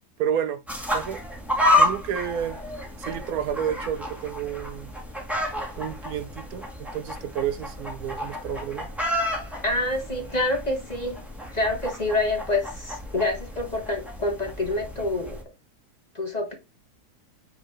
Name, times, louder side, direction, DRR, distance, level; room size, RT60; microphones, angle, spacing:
voice 1, 0.2-0.6 0.9-1.2 1.8-2.6 3.0-4.9 5.8-8.9, right 9 dB, 70° right, 1.0 m, -30 dB
sound 1, 0.7-15.4, left 1 dB, ahead, 1.7 m, -30 dB
voice 2, 9.6-11.2 11.5-15.4 16.1-16.5, left 2 dB, 30° left, 1.1 m, -27 dB
8.7 x 3.7 x 3.2 m
omnidirectional pair, 1.7 m